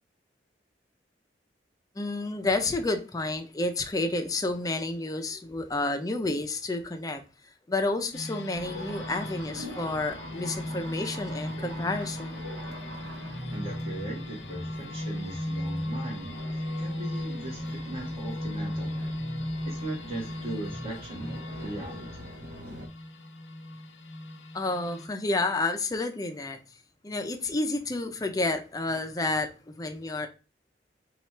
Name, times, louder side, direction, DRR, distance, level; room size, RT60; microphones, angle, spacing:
voice 1, 2.0-7.2 7.7-12.4 24.5-26.6 27.0-30.3, left 2 dB, 20° left, 0.5 m, -30 dB
sound 1, 8.1-25.1, left 1 dB, 90° left, 0.6 m, -37 dB
sound 2, 8.5-22.9, equal, 85° right, 0.8 m, -42 dB
voice 2, 13.5-16.4 16.8-19.1 19.6-22.1, right 1 dB, 35° right, 1.3 m, -38 dB
3.1 x 2.4 x 4.2 m
head